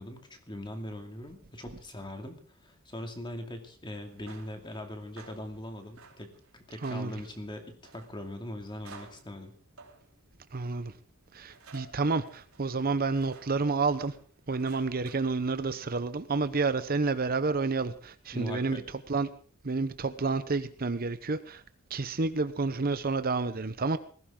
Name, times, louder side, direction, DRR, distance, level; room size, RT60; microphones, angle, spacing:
voice 1, 0.0-9.5 18.3-18.8, left 1 dB, 25° left, 4 dB, 2.4 m, -41 dB
sound 1, 4.1-15.9, right 4 dB, 85° right, 3.2 m, -55 dB
voice 2, 6.8-7.1 10.5-10.9 11.3-14.2 14.5-18.8 19.1-19.3 19.6-21.6 21.9-24.0, right 3 dB, 45° right, 12 dB, 0.8 m, -29 dB
19.5 x 16.0 x 3.8 m, 0.43 s
head